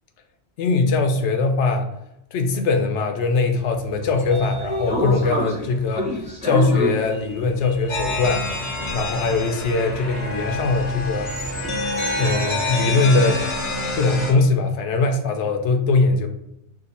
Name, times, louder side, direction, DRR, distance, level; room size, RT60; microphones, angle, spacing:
voice 1, 0.6-1.9 2.3-8.5 8.9-11.3 12.2-13.4 13.9-16.3, left 3 dB, 85° left, 5 dB, 0.9 m, -21 dB
Sliding door, 3.7-13.9, equal, 5° right, 0.7 m, -31 dB
sound 1, 7.9-14.3, left 1 dB, 35° left, 0.6 m, -27 dB
2.8 x 2.4 x 4.0 m, 0.81 s
omnidirectional pair, 1.2 m